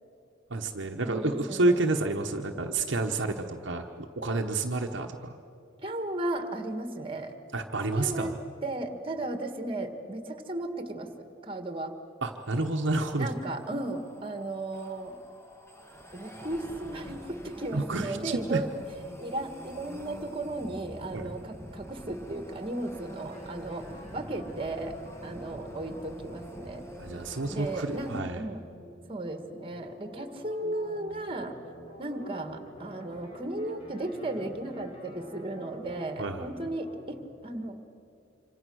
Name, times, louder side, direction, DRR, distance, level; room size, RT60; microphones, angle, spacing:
voice 1, 0.5-5.4 7.5-8.4 12.2-13.3 17.7-18.6 21.1-21.3 27.0-28.5 36.2-36.5, right 2 dB, 60° right, 3 dB, 1.2 m, -29 dB
voice 2, 1.0-1.8 5.8-7.3 7.9-8.3 8.6-11.9 13.2-15.2 16.1-18.7 19.1-23.9 24.1-25.0 25.2-26.8 27.5-28.6 29.1-31.6 32.0-37.8, right 2 dB, 25° right, 7 dB, 1.8 m, -35 dB
sound 1, 12.4-28.2, equal, 15° left, 1.9 m, -47 dB
sound 2, 23.3-37.3, equal, 30° left, 3.7 m, -48 dB
26.5 x 26.0 x 6.4 m, 2.6 s
head